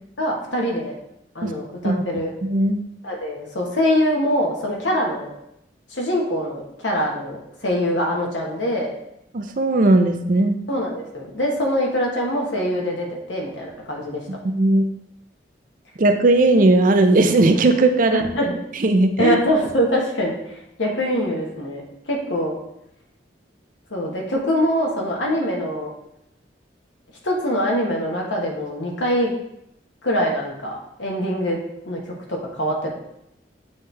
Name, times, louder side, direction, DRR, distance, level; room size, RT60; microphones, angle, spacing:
voice 1, 0.2-1.0 1.3-2.3 3.0-5.3 5.9-8.9 10.7-14.2 18.1-18.5 19.2-22.6 23.9-25.9 27.2-29.3 30.0-31.6 31.8-32.9, equal, 85° left, -1 dB, 1.4 m, -24 dB
voice 2, 2.4-2.8 9.3-10.6 14.3-14.9 16.0-18.2 18.8-19.4, right 2 dB, 45° right, 6 dB, 0.5 m, -17 dB
8.7 x 3.2 x 3.3 m, 0.80 s
head